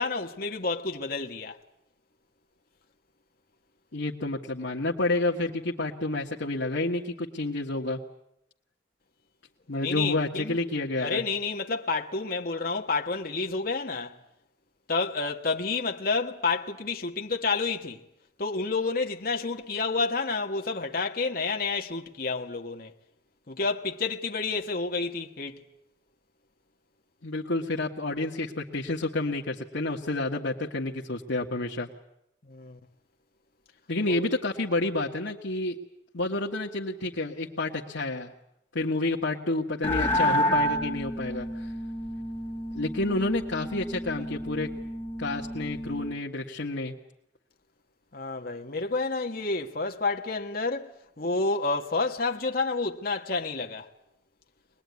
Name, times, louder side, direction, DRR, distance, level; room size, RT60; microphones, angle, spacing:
voice 1, 0.0-1.6 9.7-10.6 11.0-14.2 14.9-18.0 18.4-22.9 23.5-25.6 32.4-32.8 34.1-34.2 48.1-53.9, left 3 dB, 50° left, 1.4 m, -29 dB
voice 2, 3.9-8.0 9.7-11.2 27.2-31.9 33.9-35.7 36.1-38.3 38.7-41.7 42.7-44.7 45.2-46.9, left 2 dB, 70° left, 1.7 m, -29 dB
sound 1, 39.8-46.2, equal, 10° left, 3.4 m, -30 dB
24.0 x 20.0 x 9.5 m
head